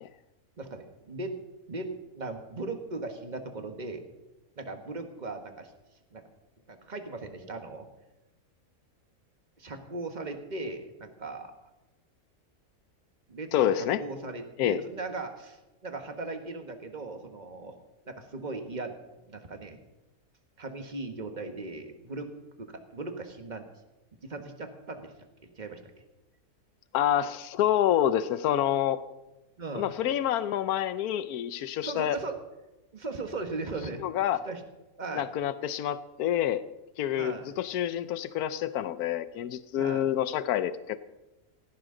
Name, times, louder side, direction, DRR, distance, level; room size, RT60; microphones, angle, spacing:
voice 1, 0.6-1.4 1.7-4.0 4.6-5.7 6.1-6.2 6.7-7.8 9.6-11.5 13.3-17.7 18.0-19.0 19.2-19.8 20.6-22.3 22.6-23.7 24.2-25.1 25.6-25.8 29.6-29.9 31.8-32.4 32.9-34.0 34.4-34.6 35.0-35.3 37.2-37.5 39.8-40.1, right 3 dB, 30° right, 6 dB, 1.5 m, -38 dB
voice 2, 13.5-14.0 14.6-14.8 26.9-29.0 29.7-32.2 34.0-34.4 35.1-36.6 37.0-41.0, left 11 dB, 80° left, 14 dB, 1.2 m, -27 dB
17.0 x 15.0 x 3.9 m, 1.0 s
omnidirectional pair, 1.6 m